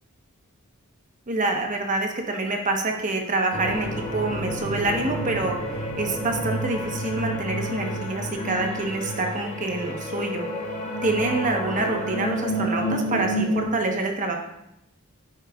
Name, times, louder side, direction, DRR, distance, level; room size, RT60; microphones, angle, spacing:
voice 1, 1.3-10.5 11.0-14.3, right 2 dB, 35° right, 2 dB, 1.0 m, -26 dB
sound 1, 3.5-13.6, equal, 35° left, 1.1 m, -30 dB
9.8 x 7.8 x 2.4 m, 0.85 s
head